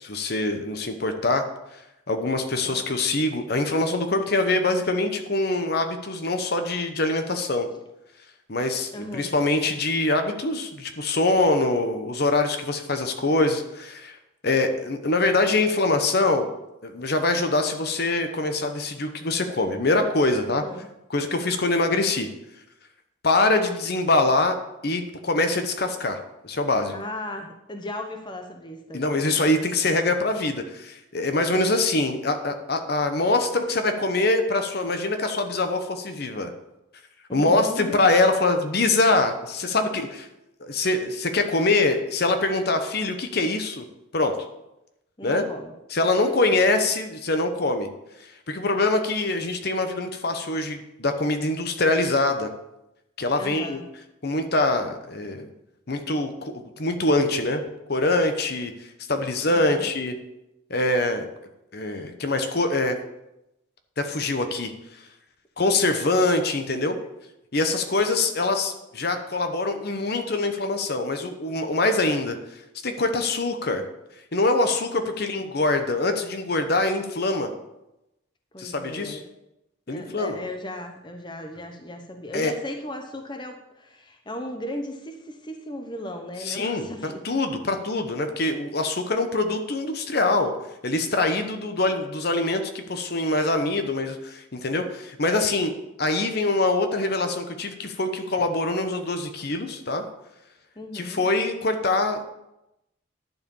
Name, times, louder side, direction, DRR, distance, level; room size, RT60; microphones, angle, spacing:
voice 1, 0.0-1.4 2.1-7.7 8.5-14.2 14.4-16.5 16.8-20.6 21.1-22.3 23.2-24.6 24.8-26.9 28.9-36.5 37.3-40.3 40.6-43.8 44.1-44.3 45.2-45.4 45.9-47.9 48.2-52.5 53.2-53.8 54.2-55.5 55.9-57.6 57.9-58.7 59.1-60.1 60.7-61.3 61.7-63.0 64.0-64.7 65.6-67.0 67.5-72.4 72.8-73.8 74.3-77.5 78.6-79.2 79.9-80.4 82.3-82.5 86.4-90.5 90.8-95.7 96.0-100.0 100.9-102.3, left 2 dB, 50° left, 7 dB, 0.9 m, -24 dB
voice 2, 8.9-9.3 20.6-20.9 26.9-29.2 37.3-38.1 45.2-45.7 46.3-46.4 53.4-53.8 59.5-59.9 62.0-62.1 67.0-67.1 75.0-75.1 78.5-79.2 79.9-87.3 100.8-101.2, left 1 dB, 20° left, 4 dB, 0.8 m, -36 dB
11.0 x 4.9 x 7.0 m, 0.90 s
head